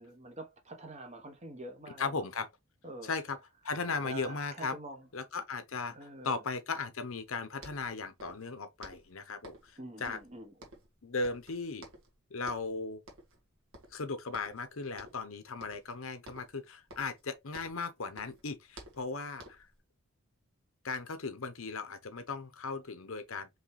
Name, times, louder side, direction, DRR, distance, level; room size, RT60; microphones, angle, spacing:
voice 1, 0.0-2.2 2.8-3.1 3.9-5.0 5.9-6.4 9.8-10.5, right 2 dB, 30° right, 1.0 m, -46 dB
voice 2, 2.0-2.5 3.0-3.4 3.6-4.8 5.1-10.2 11.0-11.9 12.3-13.0 13.9-19.7 20.8-23.5, left 4 dB, 70° left, 0.8 m, -37 dB
sound 1, 7.3-7.4 7.6-8.5 8.8-9.8 10.0-11.0 11.2-12.1 12.4-12.7 13.1-13.4 13.7-14.7 15.0-15.3 15.6-15.9 16.2-17.9 18.1-19.8, right 1 dB, 60° right, 1.6 m, -53 dB
5.0 x 3.2 x 3.1 m
head